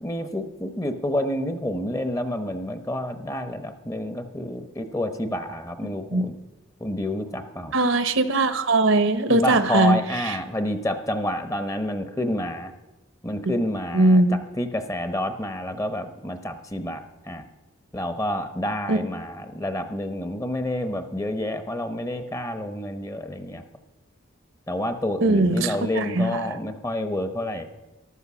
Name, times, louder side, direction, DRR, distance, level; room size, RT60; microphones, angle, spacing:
voice 1, 0.0-6.3 6.8-7.7 9.3-12.7 13.2-17.4 17.9-23.6 24.7-27.7, left 1 dB, 15° left, 9 dB, 0.8 m, -29 dB
voice 2, 7.7-10.0 10.2-10.4 13.9-14.4 18.9-19.0 25.2-26.5, right 2 dB, 65° right, 11 dB, 1.0 m, -20 dB
14.0 x 12.0 x 6.1 m, 1.1 s
head